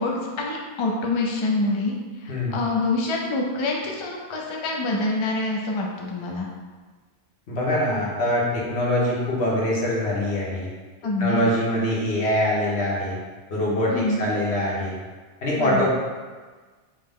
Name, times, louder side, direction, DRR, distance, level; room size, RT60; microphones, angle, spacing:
voice 1, 0.0-6.5 11.0-11.4 13.9-14.2 15.5-15.9, left 2 dB, 40° left, -1 dB, 0.4 m, -26 dB
voice 2, 7.5-10.7 11.2-13.2 13.5-14.9 15.4-15.9, left 1 dB, 80° left, -5 dB, 1.3 m, -23 dB
4.8 x 2.1 x 3.6 m, 1.4 s
omnidirectional pair, 1.1 m